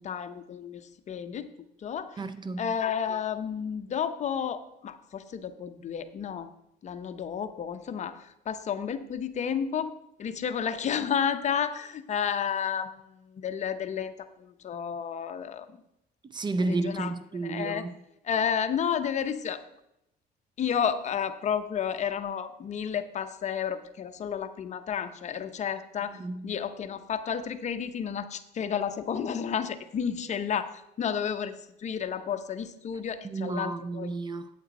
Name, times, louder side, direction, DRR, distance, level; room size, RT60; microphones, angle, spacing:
voice 1, 0.0-1.5 1.8-2.2 2.6-6.5 6.8-9.9 10.2-12.9 13.2-14.1 14.4-15.8 16.6-17.9 18.2-19.6 20.6-34.1, left 7 dB, 45° left, 0.7 m, -31 dB
voice 2, 2.2-2.7 16.3-17.9 26.2-26.5 33.2-34.5, right 3 dB, 25° right, 0.5 m, -32 dB
8.6 x 8.3 x 4.1 m
cardioid pair, 110°, 17 cm